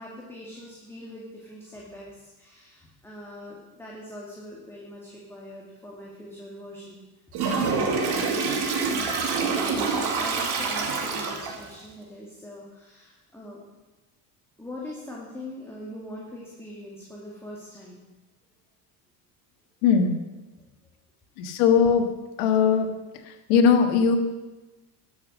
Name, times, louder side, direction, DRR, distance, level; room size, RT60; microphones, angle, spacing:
voice 1, 0.0-7.0 7.4-13.6 14.6-18.0 20.6-20.9, left 1 dB, 5° left, -4 dB, 2.2 m, -42 dB
Toilet flush, 7.3-11.7, right 4 dB, 55° right, 2.2 m, -26 dB
voice 2, 19.8-20.2 21.4-22.1 22.4-22.9 23.2-24.2, left 6 dB, 80° left, 6 dB, 1.7 m, -20 dB
13.0 x 7.3 x 6.4 m, 1.1 s
cardioid pair, 120°, 47 cm